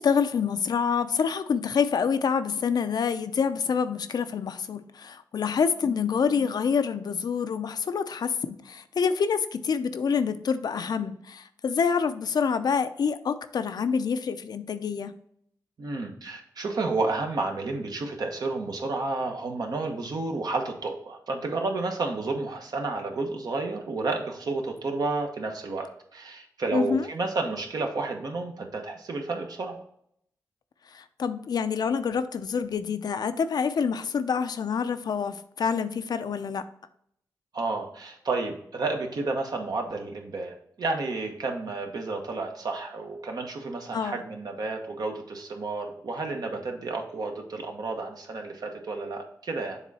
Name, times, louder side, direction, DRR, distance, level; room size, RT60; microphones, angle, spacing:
voice 1, 0.0-15.1 26.7-27.1 30.9-36.6 43.9-44.1, left 6 dB, 70° left, 11 dB, 0.5 m, -27 dB
voice 2, 15.8-29.8 37.5-49.8, right 3 dB, 65° right, 3 dB, 1.1 m, -31 dB
7.1 x 3.7 x 4.1 m, 0.70 s
cardioid pair, 75°, 7 cm